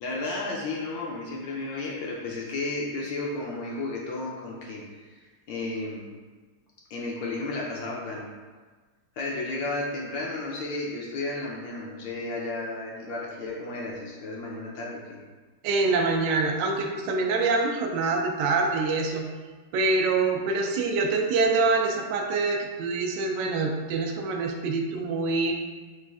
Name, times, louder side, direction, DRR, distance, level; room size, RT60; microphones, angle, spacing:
voice 1, 0.0-6.1 6.9-8.3 9.2-15.2, left 2 dB, 75° left, -3 dB, 1.2 m, -33 dB
voice 2, 15.6-19.2 19.7-25.5, right 3 dB, 80° right, 1 dB, 1.0 m, -25 dB
6.2 x 2.5 x 2.3 m, 1.4 s
omnidirectional pair, 2.4 m